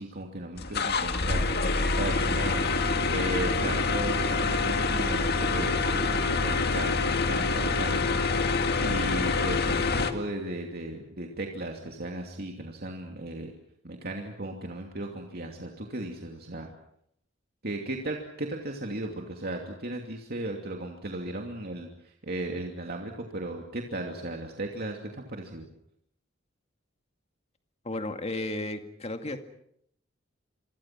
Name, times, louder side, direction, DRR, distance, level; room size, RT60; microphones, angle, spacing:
voice 1, 0.0-8.2 8.8-13.5 13.8-16.7 17.6-25.7, right 2 dB, 50° right, 2 dB, 2.8 m, -36 dB
sound 1, 0.6-10.1, left 3 dB, 55° left, 2.0 m, -26 dB
voice 2, 27.8-29.4, left 2 dB, 35° left, 6 dB, 2.2 m, -33 dB
27.5 x 24.5 x 6.1 m, 0.71 s
head